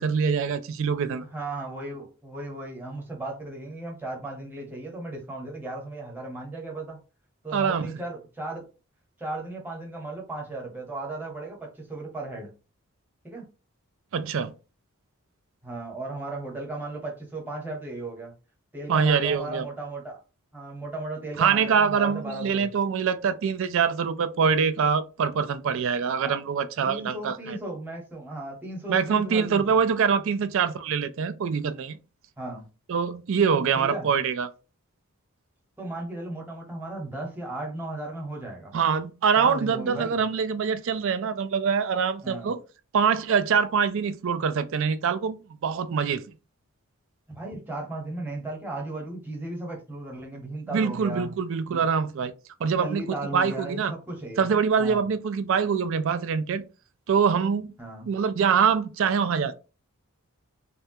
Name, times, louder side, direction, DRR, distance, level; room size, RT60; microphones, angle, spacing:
voice 1, 0.0-1.2 7.5-7.9 14.1-14.5 18.9-19.7 21.4-27.6 28.9-32.0 32.9-34.5 38.7-42.6 42.9-45.4 45.6-46.2 50.7-52.3 52.6-53.0 53.3-53.9 54.4-56.6 57.1-57.7 58.1-59.5, right 6 dB, 60° right, 0.4 m, -24 dB
voice 2, 1.3-7.0 7.4-8.6 9.2-12.5 13.2-13.5 15.6-18.3 18.7-20.2 20.5-22.7 26.2-26.4 26.8-29.8 32.4-32.7 33.7-34.1 35.8-38.7 39.4-40.2 42.2-42.5 47.3-51.3 51.7-51.8 52.6-54.5 54.8-55.1 57.8-58.1, right 2 dB, 10° right, 1.0 m, -36 dB
3.3 x 2.2 x 2.7 m
head